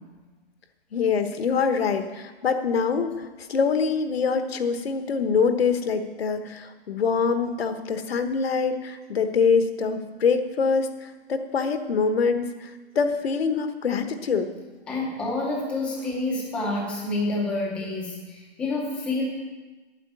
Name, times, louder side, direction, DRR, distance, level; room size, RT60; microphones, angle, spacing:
voice 1, 0.9-14.5, left 5 dB, 70° left, 8 dB, 1.4 m, -24 dB
voice 2, 14.9-19.2, left 2 dB, 5° left, -2 dB, 0.7 m, -28 dB
9.1 x 7.8 x 9.2 m, 1.2 s
hypercardioid pair, 175°, 32 cm